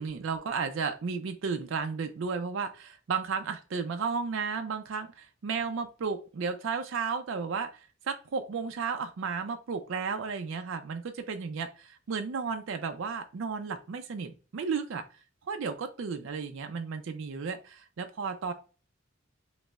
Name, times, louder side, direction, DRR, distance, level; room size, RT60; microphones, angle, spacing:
voice 1, 0.0-7.7 8.1-15.0 15.5-18.5, right 5 dB, 80° right, 7 dB, 0.4 m, -33 dB
5.1 x 2.0 x 2.3 m, 0.34 s
head